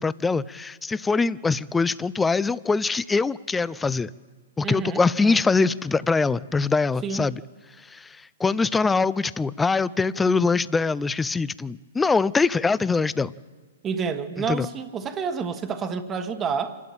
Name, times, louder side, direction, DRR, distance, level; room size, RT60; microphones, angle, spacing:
voice 1, 0.0-4.1 4.6-7.4 7.9-13.3 14.5-14.7, left 4 dB, 10° left, 18 dB, 0.5 m, -23 dB
voice 2, 4.6-5.5 7.0-7.3 13.8-16.8, right 6 dB, 20° right, 8 dB, 1.4 m, -29 dB
27.0 x 12.0 x 8.8 m, 1.4 s
hypercardioid pair, 125°, 0 cm